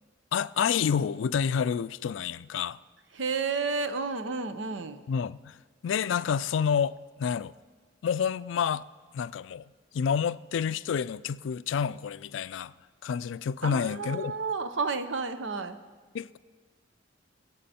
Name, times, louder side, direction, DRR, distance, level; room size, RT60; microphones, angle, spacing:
voice 1, 0.3-2.8 5.1-5.6 5.8-7.5 8.0-8.8 9.1-9.6 9.9-12.7 13.0-14.4 16.1-16.4, left 7 dB, 85° left, 0.3 m, -29 dB
voice 2, 3.1-5.0 13.6-15.8, right 4 dB, 85° right, 0.8 m, -31 dB
21.5 x 8.3 x 4.3 m
head